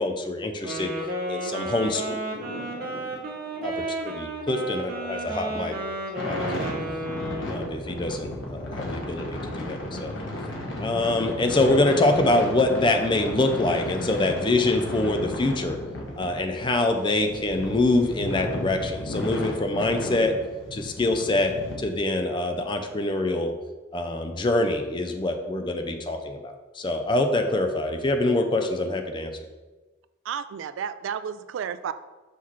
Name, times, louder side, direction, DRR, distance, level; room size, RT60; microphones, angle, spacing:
voice 1, 0.0-2.0 3.6-3.7 4.0-5.7 6.3-6.7 7.2-10.1 10.8-15.8 16.2-20.3 20.7-23.5 23.9-29.3, left 2 dB, 25° left, 6 dB, 0.4 m, -25 dB
Wind instrument woodwind instrument, 0.6-7.7, right 1 dB, 50° right, 1.0 m, -32 dB
voice 2, 1.8-3.9 4.5-4.9 5.4-5.9, left 1 dB, 60° left, -4 dB, 0.9 m, -44 dB
sound 1, 6.1-21.7, left 1 dB, 75° left, 1.2 m, -34 dB
voice 3, 30.3-31.9, right 7 dB, 75° right, 13 dB, 0.3 m, -32 dB
5.8 x 5.7 x 3.1 m, 1.2 s
head